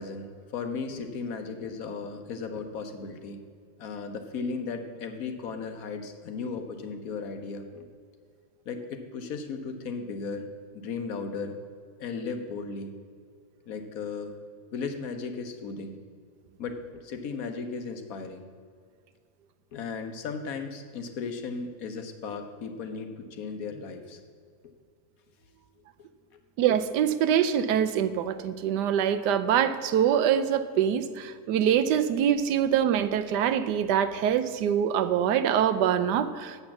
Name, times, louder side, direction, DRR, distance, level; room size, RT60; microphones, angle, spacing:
voice 1, 0.0-3.4 3.8-7.9 8.7-10.5 10.7-11.6 12.0-12.9 13.7-14.4 14.7-16.0 16.6-18.4 19.7-24.2 26.3-26.4, left 4 dB, 65° left, 6 dB, 1.2 m, -36 dB
voice 2, 26.6-36.6, right 9 dB, 85° right, 11 dB, 1.2 m, -24 dB
7.9 x 7.0 x 7.1 m, 2.1 s
omnidirectional pair, 1.8 m